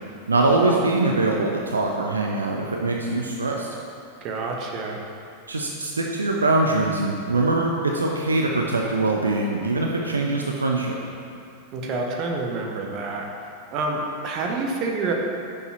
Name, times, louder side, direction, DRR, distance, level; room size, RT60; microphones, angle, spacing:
voice 1, 0.3-3.7 5.5-11.0, right 2 dB, 75° right, 0 dB, 0.5 m, -23 dB
voice 2, 4.2-5.0 11.7-13.3 13.7-15.1, right 3 dB, 40° right, 0 dB, 0.9 m, -28 dB
6.6 x 4.9 x 4.3 m, 2.4 s
figure-of-eight pair, 90°, 0 cm